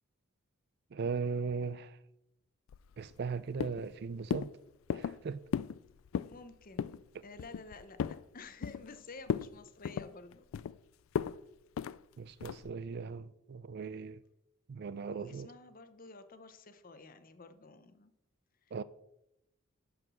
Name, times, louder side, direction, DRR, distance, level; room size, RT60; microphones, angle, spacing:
voice 1, 0.9-2.0 3.0-4.5 4.9-5.4 7.1-7.2 12.2-14.2 14.7-15.5 18.7-18.8, right 5 dB, 55° right, 0.4 m, -38 dB
sound 1, 2.7-3.3 3.6-3.9 4.3-4.5 4.9-5.2 5.5-5.8 6.0-6.4 6.8-7.0 7.4-8.2 8.6-9.0 9.3-9.5 9.8-10.7 11.1-11.4 11.8-12.0 12.4-12.7, left 7 dB, 75° left, 0.3 m, -35 dB
voice 2, 6.2-10.4 15.1-18.1, left 3 dB, 45° left, 0.8 m, -51 dB
11.0 x 4.9 x 6.1 m
head